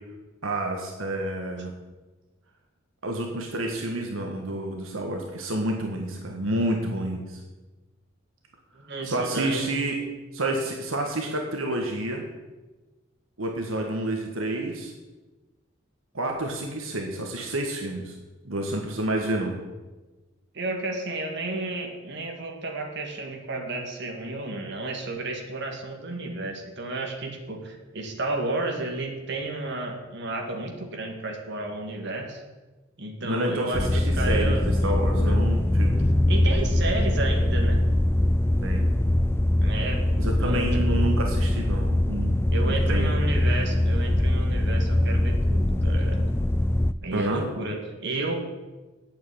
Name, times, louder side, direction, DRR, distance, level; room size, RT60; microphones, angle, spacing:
voice 1, 0.4-1.7 3.0-7.4 9.0-10.0 10.3-12.3 13.4-14.9 16.1-18.1 18.4-19.6 33.2-36.1 38.6-38.9 40.2-42.4 42.6-43.2 47.1-47.4, right 1 dB, 80° right, 2 dB, 1.6 m, -29 dB
voice 2, 8.7-9.7 20.5-32.4 33.0-35.4 36.3-37.9 39.6-41.1 42.5-46.3 47.0-48.3, right 2 dB, 60° right, 2 dB, 1.9 m, -32 dB
sound 1, 33.7-46.9, left 1 dB, 10° left, 0.3 m, -22 dB
8.6 x 8.5 x 8.6 m, 1.2 s
head